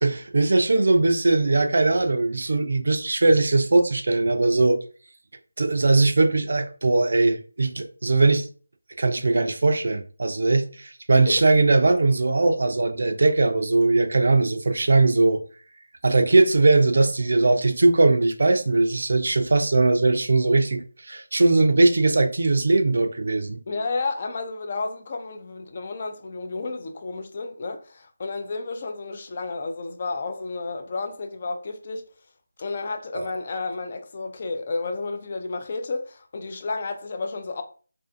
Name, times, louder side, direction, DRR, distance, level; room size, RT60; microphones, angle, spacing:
voice 1, 0.0-4.8 5.6-8.5 9.0-15.4 16.0-23.6 33.1-33.3, right 3 dB, 60° right, 0.4 m, -20 dB
voice 2, 23.7-32.0 32.6-37.6, left 3 dB, 35° left, 0.3 m, -31 dB
2.5 x 2.4 x 2.5 m
figure-of-eight pair, 165°, 0 cm